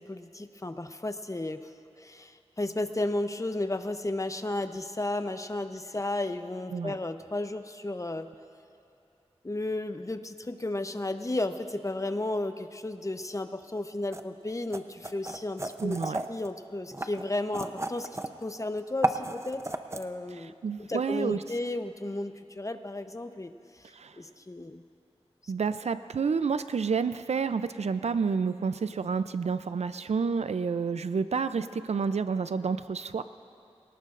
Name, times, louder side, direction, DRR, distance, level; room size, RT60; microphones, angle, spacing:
voice 1, 0.0-1.6 2.0-8.3 9.4-20.5 20.9-23.5 24.2-24.8 25.4-25.5, left 2 dB, 30° left, 9 dB, 0.7 m, -33 dB
sound 1, 14.1-14.2 14.7-16.5 16.9-18.4 18.8-20.0, right 2 dB, 25° right, 0.7 m, -32 dB
voice 2, 15.8-16.2 20.3-21.4 23.9-24.2 25.5-33.2, right 5 dB, 80° right, 12 dB, 0.4 m, -29 dB
23.5 x 18.0 x 2.5 m, 2.7 s
wide cardioid pair, 50°, 11 cm